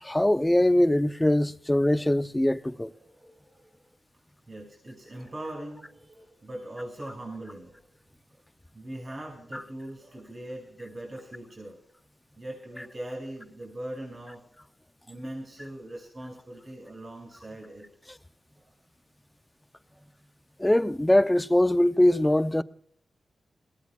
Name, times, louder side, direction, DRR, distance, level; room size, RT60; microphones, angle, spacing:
voice 1, 0.0-2.9 9.5-9.6 20.6-22.6, left 1 dB, 15° left, 0.6 m, -22 dB
voice 2, 2.6-3.8 4.5-7.8 8.3-8.4 8.7-11.8 12.4-14.4 15.1-17.8 18.6-18.7 19.9-20.0, right 1 dB, 45° right, 5.8 m, -41 dB
21.0 x 16.5 x 2.4 m
cardioid pair, 45°, 0 cm